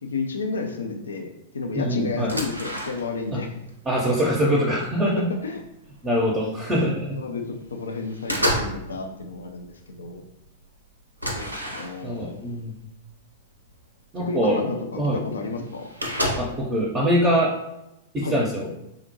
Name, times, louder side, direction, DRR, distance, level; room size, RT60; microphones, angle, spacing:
voice 1, 0.0-3.5 5.0-5.1 5.4-5.6 7.1-7.4 7.7-10.2 11.3-12.3 14.2-15.9 18.2-18.4, left 4 dB, 70° left, 3 dB, 0.4 m, -31 dB
voice 2, 1.7-2.3 3.3-3.4 3.8-5.3 6.0-7.2 12.0-12.7 14.1-14.6 15.0-15.2 16.4-17.5 18.1-18.7, equal, 20° right, -3 dB, 0.6 m, -23 dB
sound 1, 2.2-3.3 3.7-4.9 5.5-5.6 6.0-6.9 7.3-7.7 8.0-8.9 9.2-9.7 10.1-10.2 10.5-10.6 11.2-12.3 13.1-13.2 13.7-13.8 14.9-15.0 15.2-15.3 15.5-16.7, equal, 90° right, 0.5 m, -30 dB
3.6 x 2.1 x 2.8 m, 0.86 s
figure-of-eight pair, 100°, 0 cm